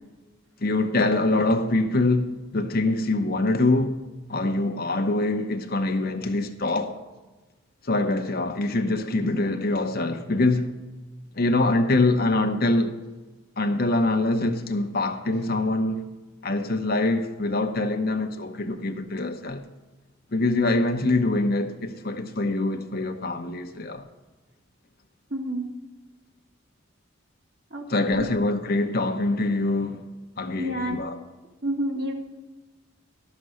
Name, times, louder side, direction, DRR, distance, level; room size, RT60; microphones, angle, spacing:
voice 1, 0.6-4.0 4.3-7.0 7.8-10.8 11.3-13.0 13.6-16.0 16.4-19.6 20.3-24.0 27.9-30.1 30.4-31.2, left 2 dB, 50° left, 0.9 m, -24 dB
voice 2, 25.3-25.6 27.7-28.3 30.6-31.0 31.6-32.1, right 1 dB, 55° right, 1.9 m, -29 dB
12.5 x 6.7 x 6.3 m
head